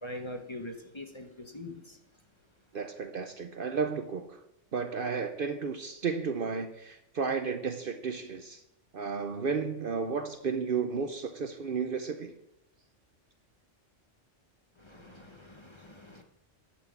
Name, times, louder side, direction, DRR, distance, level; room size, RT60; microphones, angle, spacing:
voice 1, 0.0-2.0 14.8-16.2, left 1 dB, 25° left, 5 dB, 1.0 m, -43 dB
voice 2, 2.7-4.4 4.7-8.6 8.9-12.3, right 5 dB, 55° right, 8 dB, 0.8 m, -33 dB
11.5 x 5.9 x 7.2 m, 0.85 s
omnidirectional pair, 1.3 m